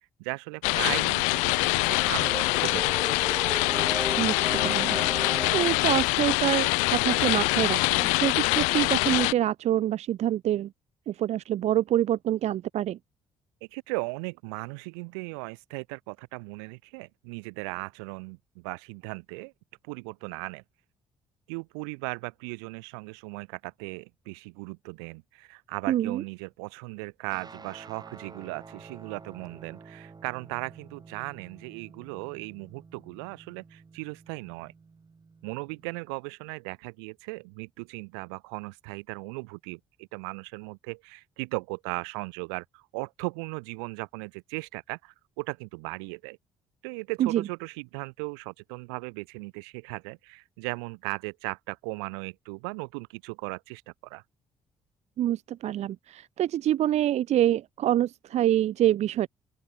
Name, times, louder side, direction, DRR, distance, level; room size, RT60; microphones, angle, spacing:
voice 1, 0.2-3.4 13.7-19.5 19.8-20.6 21.5-34.7 35.4-46.4 46.8-54.2, right 34 dB, 90° right, 2.8 m, -37 dB
sound 1, 0.6-9.3, left 31 dB, 85° left, 0.5 m, -24 dB
sound 2, 1.9-6.0, right 1 dB, 10° right, 3.0 m, -36 dB
voice 2, 4.2-5.0 5.5-10.7 11.1-13.0 25.9-26.2 47.2-47.4 55.2-59.3, right 12 dB, 65° right, 0.8 m, -26 dB
Guitar, 27.3-36.1, right 4 dB, 35° right, 4.6 m, -50 dB
open air
hypercardioid pair, 55°, 12 cm